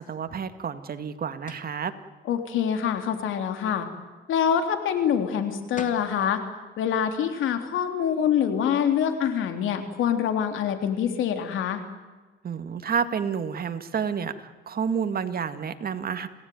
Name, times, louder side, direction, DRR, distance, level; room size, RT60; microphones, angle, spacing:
voice 1, 0.0-1.9 12.4-16.3, right 7 dB, 50° right, 9 dB, 2.1 m, -30 dB
sound 1, 1.5-1.8 5.4-5.5 5.8-6.1, left 5 dB, 40° left, 3.0 m, -39 dB
voice 2, 2.3-3.9 4.3-6.4 6.8-11.8, left 8 dB, 80° left, 7 dB, 3.5 m, -25 dB
28.0 x 18.0 x 9.5 m, 1.3 s
cardioid pair, 90°, 20 cm